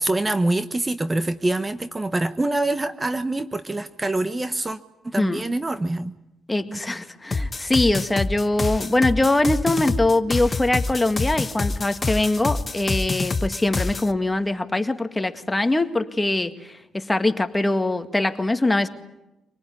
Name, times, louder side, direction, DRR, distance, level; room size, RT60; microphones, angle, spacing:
voice 1, 0.0-4.8 5.1-6.1 6.7-6.8, right 2 dB, 20° right, 11 dB, 1.2 m, -25 dB
voice 2, 6.5-18.9, left 2 dB, 15° left, 8 dB, 2.0 m, -22 dB
sound 1, 7.3-14.1, left 3 dB, 30° left, 1.1 m, -26 dB
25.0 x 19.0 x 9.9 m, 0.95 s
supercardioid pair, 65°, 0 cm